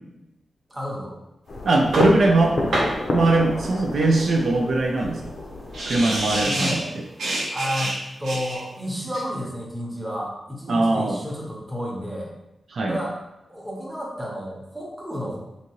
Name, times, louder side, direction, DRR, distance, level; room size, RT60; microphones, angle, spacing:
voice 1, 0.7-1.1 6.4-6.9 7.5-12.3 12.9-13.2 13.5-15.4, equal, 5° right, -3 dB, 0.8 m, -31 dB
sound 1, 1.5-6.4, left 2 dB, 50° left, 0.5 m, -30 dB
sound 2, 1.6-1.7 1.9-3.0 5.0-5.1 5.4-5.5 5.7-6.8 7.2-8.6, right 1 dB, 90° right, 0.8 m, -27 dB
voice 2, 1.7-2.6 3.1-5.2 5.9-7.0 10.7-11.2 12.7-13.0, right 2 dB, 60° right, 1 dB, 0.3 m, -21 dB
3.8 x 2.6 x 3.0 m, 0.89 s
wide cardioid pair, 150°, 0 cm